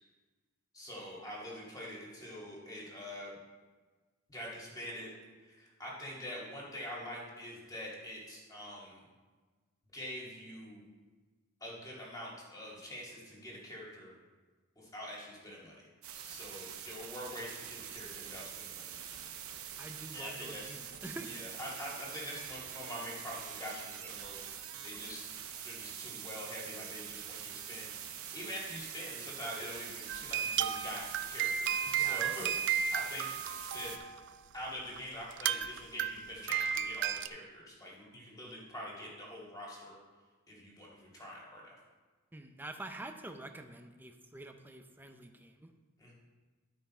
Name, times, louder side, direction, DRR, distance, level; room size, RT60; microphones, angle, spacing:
voice 1, 0.7-3.3 4.3-5.1 5.4-9.0 9.9-10.8 11.6-14.1 14.8-15.9 16.1-19.0 20.1-20.8 21.3-24.4 24.8-25.3 25.6-32.5 32.7-33.3 33.7-33.9 34.5-40.0 40.5-41.7 46.0-46.1, equal, 15° left, -5 dB, 2.4 m, -45 dB
sound 1, 16.0-34.0, right 9 dB, 80° right, 0.9 m, -45 dB
voice 2, 19.8-21.4 31.9-32.6 42.3-45.7, right 2 dB, 10° right, 6 dB, 0.6 m, -47 dB
sound 2, 30.1-34.3 35.0-35.1 35.3-37.3, right 8 dB, 55° right, 0.4 m, -33 dB
12.5 x 5.6 x 4.4 m, 1.4 s
head